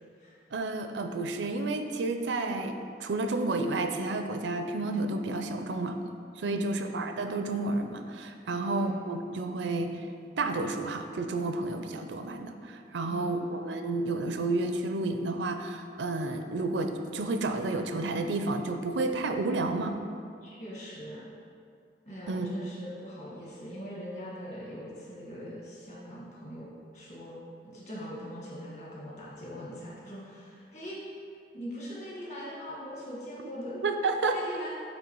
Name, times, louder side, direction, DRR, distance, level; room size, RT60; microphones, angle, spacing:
voice 1, 0.5-6.0 6.4-10.1 10.4-19.9 22.3-22.5 33.8-34.4, right 2 dB, 80° right, 6 dB, 0.5 m, -31 dB
voice 2, 6.4-6.9 8.5-9.0 13.1-13.5 20.4-21.2 22.1-31.0 31.5-33.8 34.3-34.7, equal, 40° left, -6 dB, 1.6 m, -41 dB
8.4 x 3.2 x 4.5 m, 2.3 s
head